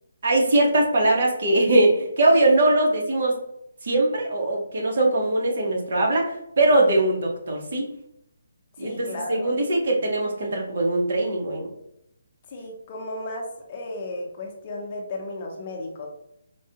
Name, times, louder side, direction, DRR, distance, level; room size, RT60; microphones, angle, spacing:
voice 1, 0.2-3.4 3.8-7.8 8.8-11.7, right 2 dB, 55° right, 0 dB, 1.1 m, -21 dB
voice 2, 8.8-9.5 12.5-16.1, left 2 dB, 30° left, 0 dB, 0.7 m, -34 dB
4.5 x 2.2 x 2.8 m, 0.79 s
hypercardioid pair, 160°, 0 cm